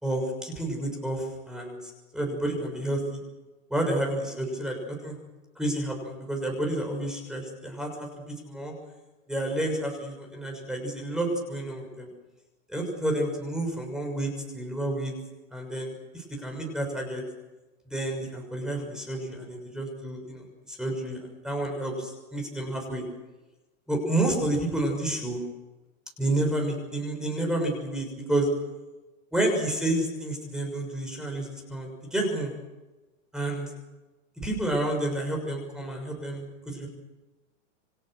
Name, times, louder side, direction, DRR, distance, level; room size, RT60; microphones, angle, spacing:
voice 1, 0.0-3.2 3.7-5.2 5.6-8.7 9.3-12.1 12.7-15.1 15.5-17.2 17.9-23.0 23.9-25.4 26.2-28.5 29.3-32.5 33.3-33.7 34.4-36.9, right 1 dB, ahead, 2 dB, 6.4 m, -30 dB
29.0 x 25.0 x 6.5 m, 1.1 s
supercardioid pair, 155°, 39 cm